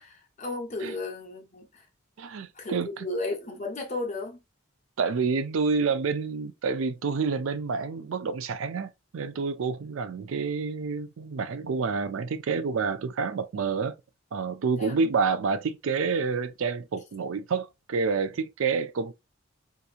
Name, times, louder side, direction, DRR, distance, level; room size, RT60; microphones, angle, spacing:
voice 1, 0.0-1.9 2.5-4.4 14.8-14.9, left 2 dB, 35° left, 0.9 m, -34 dB
voice 2, 2.2-3.1 5.0-13.9 14.3-19.1, right 5 dB, 80° right, 0.4 m, -28 dB
3.5 x 2.9 x 2.4 m
head